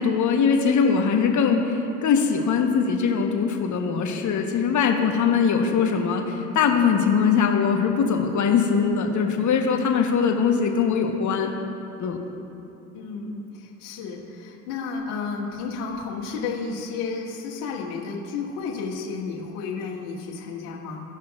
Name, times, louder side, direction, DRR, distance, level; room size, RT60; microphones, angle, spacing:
voice 1, 0.0-11.5 12.0-12.2, left 6 dB, 40° left, 3 dB, 1.2 m, -21 dB
voice 2, 12.9-21.0, left 4 dB, 70° left, -3 dB, 1.8 m, -32 dB
16.5 x 5.7 x 2.5 m, 3.0 s
hypercardioid pair, 75°, 44 cm